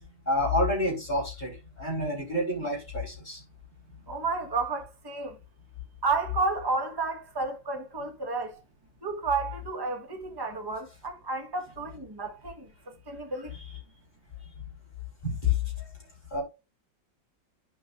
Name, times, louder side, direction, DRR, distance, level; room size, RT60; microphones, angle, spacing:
voice 1, 0.3-3.4 15.2-15.5 16.3-16.4, left 2 dB, 25° left, 4.2 m, -28 dB
voice 2, 4.1-5.4 6.0-8.6 9.0-12.7 13.1-13.5, right 3 dB, 15° right, 1.1 m, -31 dB
11.5 x 5.4 x 2.5 m
omnidirectional pair, 2.0 m